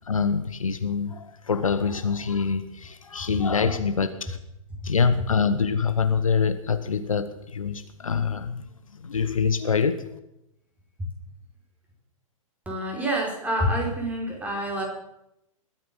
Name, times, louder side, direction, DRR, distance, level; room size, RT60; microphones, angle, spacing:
voice 1, 0.1-4.4 4.8-8.6 9.0-10.1, left 5 dB, 70° left, 10 dB, 1.3 m, -25 dB
voice 2, 12.6-14.8, equal, 10° right, -1 dB, 5.0 m, -27 dB
20.5 x 9.4 x 7.0 m, 0.84 s
figure-of-eight pair, 110°, 18 cm